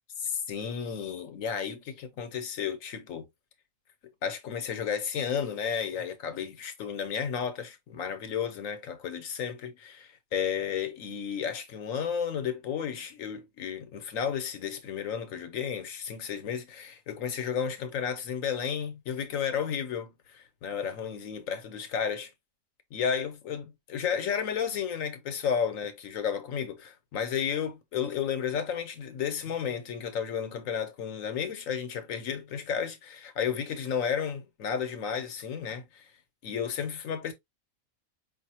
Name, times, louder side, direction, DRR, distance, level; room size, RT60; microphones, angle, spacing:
voice 1, 0.2-3.3 4.2-22.3 22.9-36.0 36.4-37.3, left 7 dB, 90° left, 1.3 m, -32 dB
5.0 x 2.7 x 2.9 m
omnidirectional pair, 1.3 m